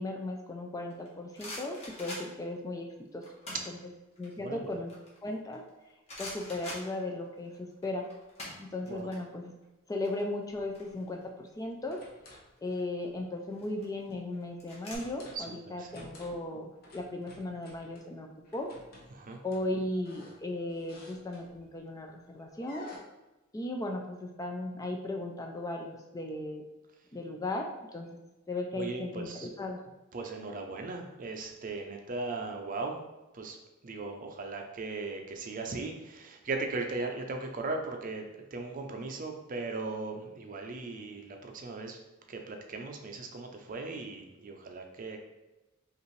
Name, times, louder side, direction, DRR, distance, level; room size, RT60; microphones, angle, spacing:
voice 1, 0.0-3.2 3.7-3.8 4.2-4.9 5.2-5.6 6.2-8.1 8.6-9.5 9.9-12.0 12.6-18.7 19.4-22.9 23.5-26.7 27.1-28.1 28.5-29.8, left 2 dB, 15° left, 2 dB, 0.4 m, -36 dB
sound 1, 0.9-2.6 3.2-3.8 4.2-5.7 6.1-7.5 7.7-9.2 9.4-9.6 9.9-11.5 12.4-12.8 13.5-15.0, left 1 dB, 30° left, 1.2 m, -44 dB
voice 2, 4.4-4.7 8.9-9.1 15.3-16.1 19.1-19.4 28.7-29.5 30.1-33.0 33.3-33.6 33.8-42.0 42.3-45.2, right 3 dB, 40° right, 3 dB, 0.5 m, -38 dB
sound 2, 10.5-10.9 11.6-12.5 13.0-13.2 14.9-15.5 15.8-16.5 16.8-18.1 18.4-21.8 22.6-23.0, left 2 dB, 50° left, 0.9 m, -53 dB
5.2 x 2.5 x 3.1 m, 1.0 s
head